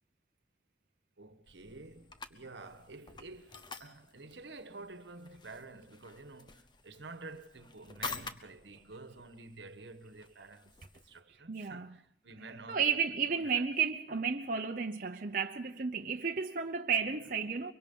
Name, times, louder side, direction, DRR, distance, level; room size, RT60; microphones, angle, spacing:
voice 1, 1.2-13.0 13.3-13.6 17.1-17.2, right 3 dB, 80° right, 1.3 m, -50 dB
sound 1, 1.5-11.2, left 4 dB, 25° left, 0.8 m, -49 dB
voice 2, 11.5-11.9 12.7-17.7, right 6 dB, 50° right, 0.8 m, -33 dB
23.5 x 23.5 x 5.4 m
head